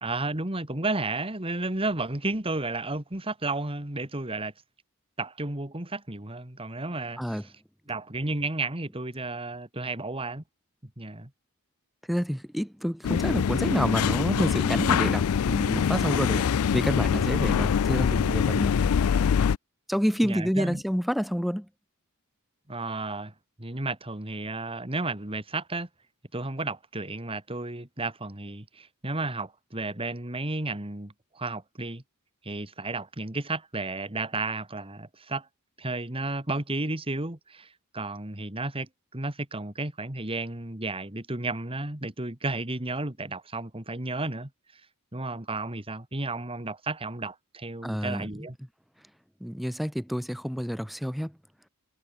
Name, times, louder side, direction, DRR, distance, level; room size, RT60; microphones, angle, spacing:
voice 1, 0.0-4.5 5.2-7.4 7.9-10.4 11.0-11.3 20.2-20.8 22.7-23.3 23.6-25.9 26.3-32.0 32.4-35.5 35.8-37.7 37.9-44.5 45.1-48.6, right 2 dB, 25° right, 2.4 m, -33 dB
voice 2, 12.1-19.0 19.9-21.7 47.8-48.3 49.4-51.3, equal, ahead, 2.0 m, -28 dB
sound 1, 13.0-19.6, left 7 dB, 80° left, 0.4 m, -24 dB
head